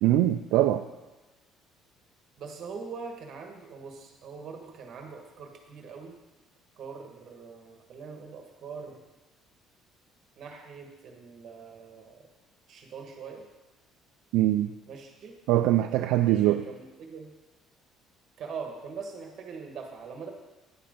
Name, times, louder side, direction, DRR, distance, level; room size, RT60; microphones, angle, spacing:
voice 1, 0.0-0.9 14.3-14.7 15.5-16.7, right 14 dB, 90° right, 6 dB, 0.3 m, -23 dB
voice 2, 2.4-6.2 6.8-9.0 10.4-12.2 12.7-13.4 14.9-15.4 16.2-17.3 18.4-20.3, right 5 dB, 45° right, 3 dB, 1.3 m, -42 dB
9.7 x 5.9 x 5.2 m, 1.1 s
cardioid pair, 160°, 0 cm